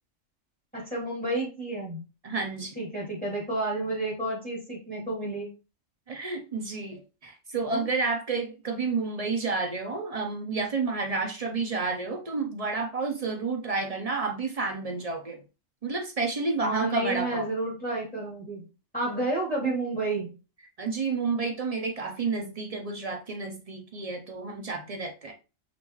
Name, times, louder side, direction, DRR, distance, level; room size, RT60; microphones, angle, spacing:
voice 1, 0.7-2.0 2.8-5.5 7.6-7.8 16.6-18.6 18.9-20.3, right 2 dB, 5° left, -5 dB, 2.4 m, -30 dB
voice 2, 2.2-2.8 6.1-15.4 15.8-17.5 20.8-25.3, right 4 dB, 45° right, 4 dB, 0.5 m, -30 dB
5.4 x 2.6 x 3.0 m, 0.31 s
omnidirectional pair, 1.4 m